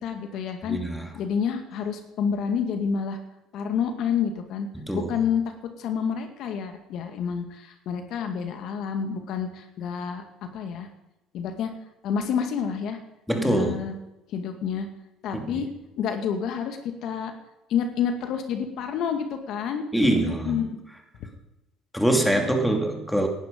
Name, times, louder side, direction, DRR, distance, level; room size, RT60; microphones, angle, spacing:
voice 1, 0.0-0.8 1.1-3.2 3.5-4.7 4.9-10.2 10.5-10.9 11.3-11.7 12.0-13.0 13.4-13.9 14.3-14.9 15.2-15.7 16.0-17.3 17.7-19.8 20.2-20.8 21.2-21.3, left 7 dB, 65° left, 6 dB, 2.1 m, -28 dB
voice 2, 0.6-1.1 4.7-5.1 13.3-13.9 15.3-15.6 19.9-20.6 21.9-23.3, right 1 dB, ahead, 3 dB, 2.7 m, -24 dB
18.0 x 11.5 x 5.4 m, 0.92 s
supercardioid pair, 90°, 0 cm